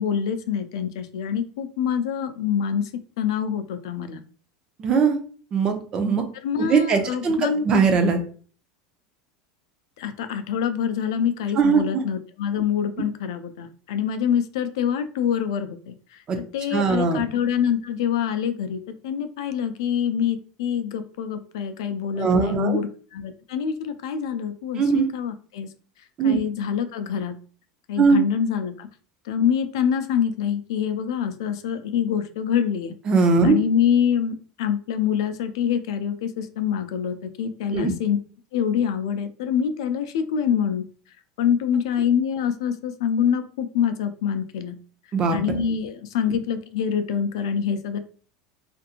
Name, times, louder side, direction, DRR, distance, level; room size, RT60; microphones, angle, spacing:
voice 1, 0.0-2.9 3.2-4.2 6.4-7.6 10.0-16.2 16.5-25.7 26.2-27.3 27.9-28.9 29.2-32.9 33.4-38.2 38.5-40.8 41.4-44.8 45.3-48.0, left 8 dB, 85° left, 9 dB, 0.3 m, -25 dB
voice 2, 4.8-5.2 5.5-6.2 6.7-7.4 7.6-8.2 11.6-12.0 16.3-16.4 16.7-17.2 22.2-22.8 24.8-25.1 26.2-26.4 28.0-28.2 33.1-33.6 37.7-37.9 45.1-45.4, right 5 dB, 30° right, 5 dB, 0.5 m, -20 dB
2.8 x 2.5 x 2.4 m, 0.42 s
supercardioid pair, 130°, 3 cm